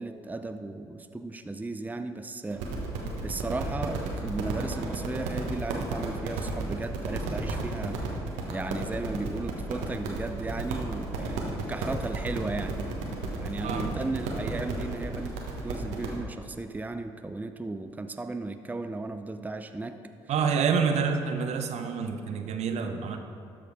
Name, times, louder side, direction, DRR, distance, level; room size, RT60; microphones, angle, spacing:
voice 1, 0.0-2.7 3.2-8.0 8.5-12.8 13.4-20.0, right 2 dB, 15° right, 8 dB, 0.5 m, -35 dB
sound 1, 2.5-16.2, right 3 dB, 80° right, 1.2 m, -33 dB
voice 2, 13.6-13.9 20.3-23.2, right 6 dB, 60° right, 6 dB, 0.8 m, -27 dB
13.0 x 5.0 x 4.7 m, 2.6 s
hypercardioid pair, 50°, 13 cm